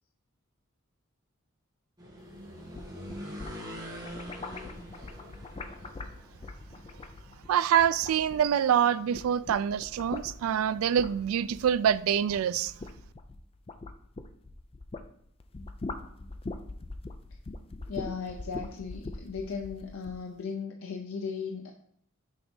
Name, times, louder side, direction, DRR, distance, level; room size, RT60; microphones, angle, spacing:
sound 1, 2.0-11.7, equal, 20° right, 1.4 m, -46 dB
sound 2, 2.5-8.8 9.0-15.1 15.4-20.2, left 3 dB, 25° left, 0.4 m, -42 dB
voice 1, 7.5-12.7, right 9 dB, 80° right, 0.3 m, -25 dB
voice 2, 17.9-21.7, left 5 dB, 85° left, 0.5 m, -37 dB
6.3 x 3.4 x 5.3 m
head